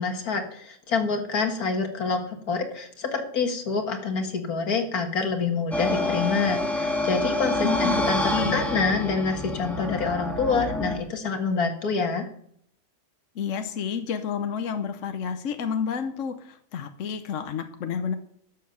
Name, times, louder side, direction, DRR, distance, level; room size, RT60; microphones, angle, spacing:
voice 1, 0.0-12.3, left 4 dB, 75° left, 4 dB, 2.1 m, -27 dB
sound 1, 5.7-11.0, left 1 dB, ahead, 1.7 m, -27 dB
voice 2, 7.6-8.0 8.3-8.6 13.4-18.1, left 6 dB, 60° left, 8 dB, 1.1 m, -29 dB
12.0 x 6.8 x 6.7 m, 0.67 s
omnidirectional pair, 1.6 m